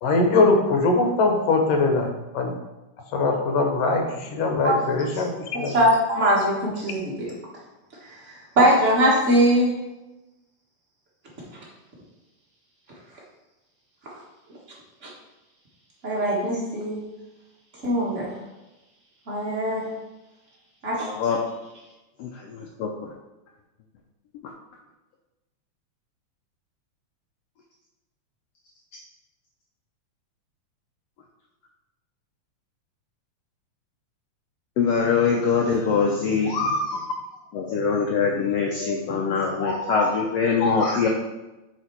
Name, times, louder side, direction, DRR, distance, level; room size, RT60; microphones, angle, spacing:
voice 1, 0.0-2.5 3.1-5.7, left 3 dB, 65° left, 3 dB, 1.7 m, -22 dB
voice 2, 5.6-7.3 8.6-9.7 15.0-15.1 16.0-17.0 17.8-18.3 19.3-19.9 20.8-21.1, equal, 80° right, -5 dB, 0.6 m, -21 dB
voice 3, 22.2-22.9 34.8-37.0 37.5-41.1, left 5 dB, 80° left, 0 dB, 1.4 m, -23 dB
7.3 x 4.2 x 4.5 m, 1.0 s
omnidirectional pair, 3.6 m